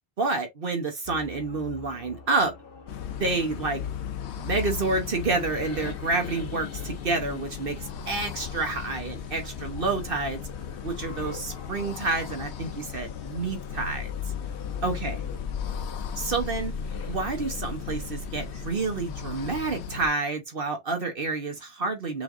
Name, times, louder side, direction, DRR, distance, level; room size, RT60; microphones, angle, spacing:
voice 1, 0.2-2.5 3.2-3.8 4.3-10.4 10.8-14.1 14.8-15.2 16.2-16.7 17.1-22.2, right 3 dB, 55° right, 1.2 m, -29 dB
sound 1, 1.0-18.8, left 4 dB, 60° left, 1.2 m, -42 dB
sound 2, 2.9-20.1, left 8 dB, 75° left, 0.9 m, -36 dB
6.2 x 3.4 x 2.5 m
omnidirectional pair, 1.1 m